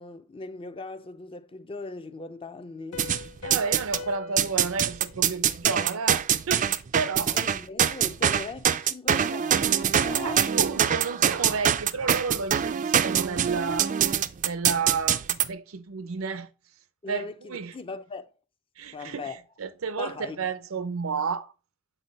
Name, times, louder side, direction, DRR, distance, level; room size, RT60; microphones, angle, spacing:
voice 1, 0.0-3.1 7.3-10.5 17.0-18.3 18.9-19.4 20.0-20.5, left 3 dB, 25° left, 0.6 m, -39 dB
Piano, 2.9-6.3, left 7 dB, 90° left, 0.6 m, -44 dB
sound 1, 3.0-4.0 4.4-15.5, right 9 dB, 40° right, 0.4 m, -24 dB
voice 2, 3.4-6.7 6.9-7.4 10.2-14.0 14.4-16.5 17.1-17.7 18.8-21.5, right 5 dB, 90° right, 0.6 m, -31 dB
8.2 x 4.0 x 4.1 m
head